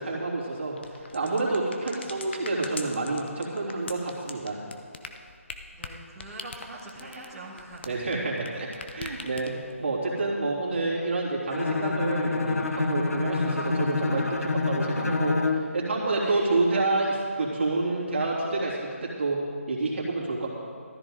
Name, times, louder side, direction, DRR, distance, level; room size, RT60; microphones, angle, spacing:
voice 1, 0.0-4.6 7.9-20.5, right 2 dB, 50° right, -5 dB, 3.3 m, -28 dB
sound 1, 0.8-8.5 8.7-9.8, left 4 dB, 50° left, 1.0 m, -41 dB
voice 2, 1.9-2.2 5.7-8.0 8.5-8.6 16.2-16.6, right 2 dB, 5° right, -14 dB, 2.3 m, -44 dB
Bowed string instrument, 11.5-15.7, left 3 dB, 85° left, 1.1 m, -27 dB
15.0 x 13.5 x 4.0 m, 2.3 s
figure-of-eight pair, 160°, 8 cm